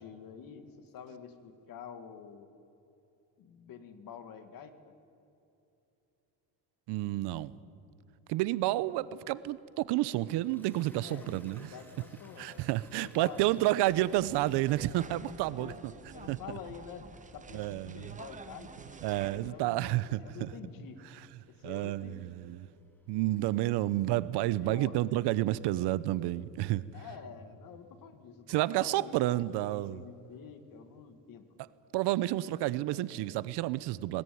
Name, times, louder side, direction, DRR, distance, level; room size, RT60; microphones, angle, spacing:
voice 1, 0.0-2.5 3.4-4.7 11.0-12.7 13.0-13.4 13.9-14.1 15.5-15.8 16.1-17.1 17.3-19.0 19.3-21.0 21.5-22.3 24.4-25.0 26.9-29.6 29.9-31.4, left 7 dB, 50° left, 9 dB, 2.1 m, -48 dB
voice 2, 6.9-7.6 8.3-11.7 12.4-15.7 16.3-16.4 17.5-18.1 19.0-20.5 21.6-22.7 23.1-26.9 28.5-30.0 31.9-34.2, right 16 dB, 70° right, 18 dB, 0.8 m, -30 dB
Toilet flush, 9.0-23.7, equal, 5° left, 3.2 m, -63 dB
sound 1, 13.9-19.5, right 4 dB, 20° right, 1.2 m, -49 dB
20.0 x 20.0 x 9.4 m, 2.9 s
cardioid pair, 135°, 42 cm